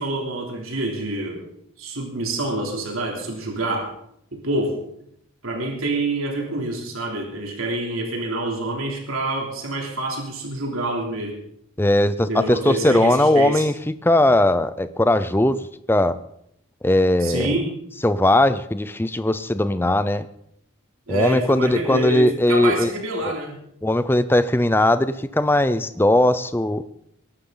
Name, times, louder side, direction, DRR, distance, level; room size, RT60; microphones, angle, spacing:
voice 1, 0.0-1.4 1.8-3.9 4.3-4.8 5.4-11.3 12.2-13.6 17.2-17.7 21.1-23.6, right 2 dB, 75° right, 0 dB, 3.1 m, -27 dB
voice 2, 11.8-13.7 14.0-16.2 16.8-17.5 18.0-20.3 21.1-22.9 23.8-26.8, left 1 dB, 10° left, 13 dB, 0.5 m, -19 dB
22.5 x 11.5 x 3.9 m, 0.73 s
head